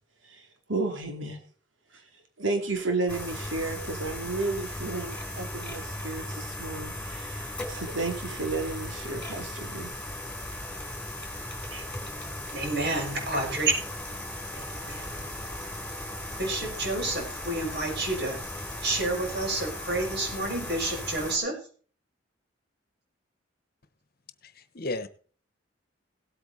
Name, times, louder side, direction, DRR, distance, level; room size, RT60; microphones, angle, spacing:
voice 1, 0.2-1.4 1.9-2.0 2.4-9.9 11.7-11.9, right 3 dB, 90° right, 4 dB, 2.8 m, -33 dB
sound 1, 3.1-21.4, left 1 dB, 5° left, 3.6 m, -37 dB
voice 2, 12.5-13.7 14.5-15.2 16.4-18.4 18.8-21.6, right 2 dB, 60° right, 0 dB, 6.6 m, -29 dB
voice 3, 24.4-25.1, left 2 dB, 50° left, 13 dB, 1.2 m, -34 dB
17.5 x 8.7 x 4.1 m, 0.42 s
head